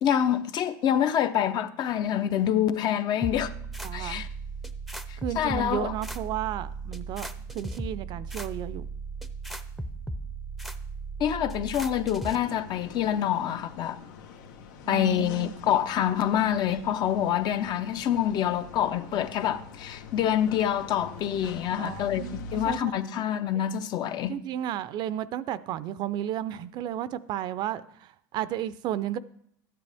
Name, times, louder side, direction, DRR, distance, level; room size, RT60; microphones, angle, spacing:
voice 1, 0.0-3.5 3.9-4.3 5.1-5.9 11.2-14.0 14.9-24.4, left 10 dB, 45° left, 0.7 m, -26 dB
sound 1, 3.2-12.4, right 3 dB, ahead, 0.6 m, -37 dB
voice 2, 3.8-4.2 5.2-7.3 7.5-8.9 14.8-15.8 21.8-22.4 22.6-22.9 24.3-29.2, right 11 dB, 45° right, 0.5 m, -33 dB
sound 2, 12.3-22.8, left 4 dB, 80° left, 1.2 m, -44 dB
12.5 x 9.7 x 3.5 m
supercardioid pair, 120°, 10 cm